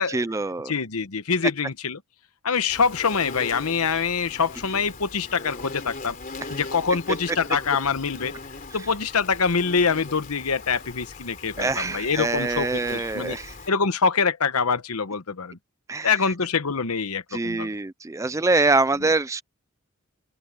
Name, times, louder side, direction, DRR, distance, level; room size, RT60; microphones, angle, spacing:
voice 1, 0.0-0.7 11.6-13.6 15.9-16.2 17.3-19.4, right 3 dB, 15° right, 0.4 m, -24 dB
voice 2, 0.7-2.0 2.4-6.2 6.5-8.3 8.7-13.4 13.7-15.6 16.0-17.7, left 5 dB, 85° left, 1.0 m, -25 dB
Insect, 2.7-13.7, left 3 dB, 40° left, 3.6 m, -40 dB
open air
head